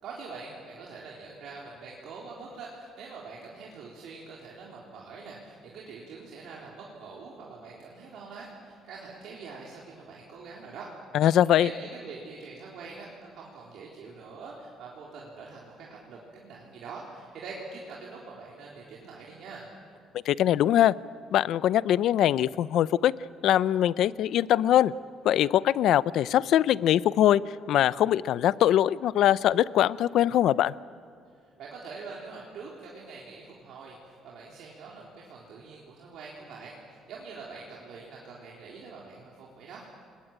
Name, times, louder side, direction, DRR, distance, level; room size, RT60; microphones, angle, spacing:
voice 1, 0.0-10.9 11.5-19.7 31.6-39.9, right 4 dB, 60° right, -4 dB, 3.8 m, -44 dB
voice 2, 11.1-11.7 20.3-20.9 21.3-23.1 23.4-24.9 25.2-27.4 27.7-30.7, left 11 dB, 60° left, 18 dB, 0.6 m, -22 dB
29.0 x 21.5 x 8.9 m, 2.3 s
cardioid pair, 165°, 0 cm